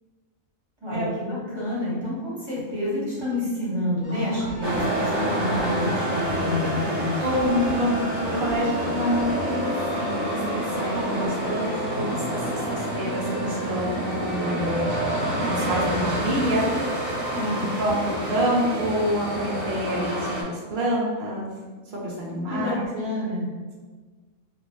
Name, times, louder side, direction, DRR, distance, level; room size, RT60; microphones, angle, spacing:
voice 1, 0.8-7.3 17.3-17.7 22.5-23.5, left 1 dB, 20° right, -10 dB, 1.4 m, -28 dB
sound 1, 4.0-15.4, left 1 dB, 70° left, 1.0 m, -40 dB
sound 2, 4.4-4.9 5.5-6.8 7.3-7.8 8.3-8.6 9.1-9.3 10.0-10.1, equal, 30° left, 0.9 m, -41 dB
sound 3, 4.6-20.4, right 1 dB, 80° right, 1.2 m, -28 dB
voice 2, 7.2-14.8 15.5-16.7 17.8-21.5 21.9-22.9, equal, 45° right, -5 dB, 0.7 m, -27 dB
2.7 x 2.4 x 3.0 m, 1.4 s
omnidirectional pair, 1.4 m